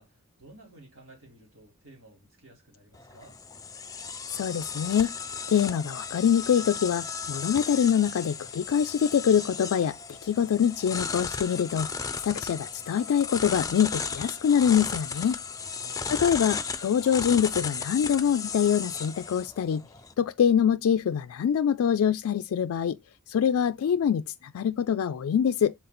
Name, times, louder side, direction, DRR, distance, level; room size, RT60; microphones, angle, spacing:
voice 1, 0.0-3.4 15.8-16.1, right 1 dB, 65° right, 4.5 m, -53 dB
sound 1, 2.9-20.1, left 5 dB, 15° left, 0.5 m, -35 dB
voice 2, 4.3-5.1 5.5-15.4 16.1-19.9 20.2-23.0 23.3-25.7, left 8 dB, 75° left, 0.3 m, -25 dB
7.2 x 3.9 x 4.2 m
head